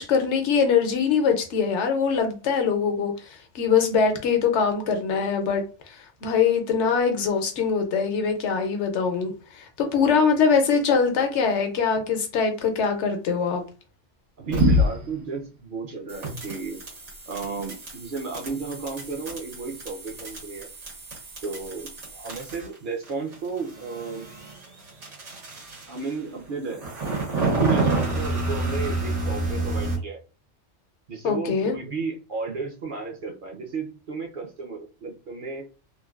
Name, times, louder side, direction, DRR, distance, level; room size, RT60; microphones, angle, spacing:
voice 1, 0.0-5.6 5.9-13.6 31.2-31.7, left 6 dB, 75° left, 5 dB, 0.9 m, -23 dB
voice 2, 9.8-10.3 14.4-16.8 17.3-20.7 21.4-24.2 25.9-27.0 27.3-30.2 31.1-35.6, right 4 dB, 55° right, 0 dB, 0.7 m, -33 dB
sound 1, 14.5-15.1 16.1-22.8 23.0-26.1 26.7-30.0, right 1 dB, 85° right, 1.6 m, -28 dB
3.1 x 2.2 x 2.3 m, 0.33 s
omnidirectional pair, 1.2 m